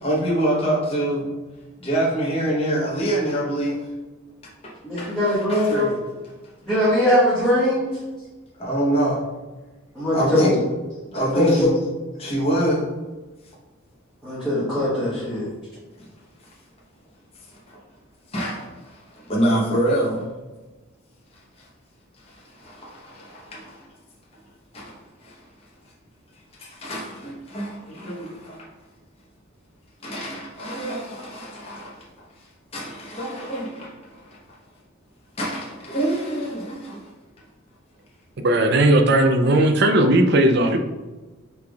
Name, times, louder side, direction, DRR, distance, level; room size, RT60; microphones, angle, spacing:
voice 1, 0.0-1.3 1.8-3.8 4.6-6.0 8.6-9.2 10.1-10.5 11.1-11.7 12.2-12.8 16.0-16.1 17.7-17.8 18.3-20.2 21.6-21.7 22.2-23.8 24.7-25.4 26.6-28.7 30.0-32.0 32.7-34.4 35.4-37.1, right 1 dB, 30° left, -4 dB, 0.8 m, -26 dB
voice 2, 4.8-5.9 6.6-7.8 9.9-10.6 11.3-11.7 14.2-15.5, left 1 dB, ahead, -13 dB, 1.3 m, -20 dB
voice 3, 38.4-40.8, right 1 dB, 50° right, 6 dB, 0.4 m, -17 dB
5.8 x 3.3 x 2.3 m, 1.2 s
head